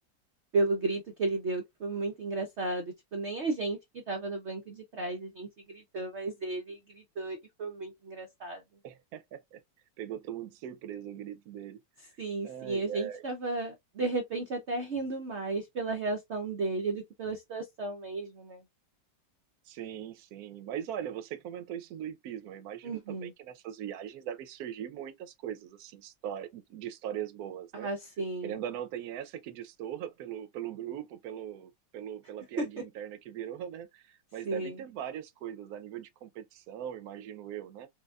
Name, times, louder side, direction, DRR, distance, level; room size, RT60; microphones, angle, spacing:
voice 1, 0.5-8.6 12.2-18.6 22.8-23.3 27.7-28.6 32.6-32.7 34.5-34.8, right 3 dB, 85° right, 0.6 m, -34 dB
voice 2, 8.8-9.6 10.0-11.8 12.4-13.2 19.7-27.9 28.4-37.9, right 10 dB, 70° right, 0.9 m, -40 dB
4.7 x 2.3 x 2.3 m
omnidirectional pair, 2.1 m